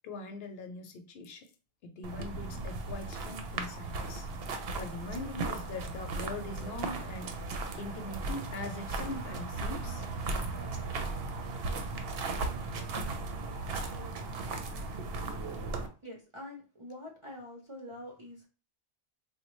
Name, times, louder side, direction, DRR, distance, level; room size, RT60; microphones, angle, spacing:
voice 1, 0.0-1.5 1.8-4.3 4.8-10.0, left 2 dB, 70° left, 0.8 m, -42 dB
sound 1, 2.0-15.9, right 3 dB, 70° right, 0.8 m, -36 dB
voice 2, 16.0-18.5, left 1 dB, 40° right, 0.5 m, -45 dB
3.7 x 2.1 x 3.0 m
omnidirectional pair, 1.1 m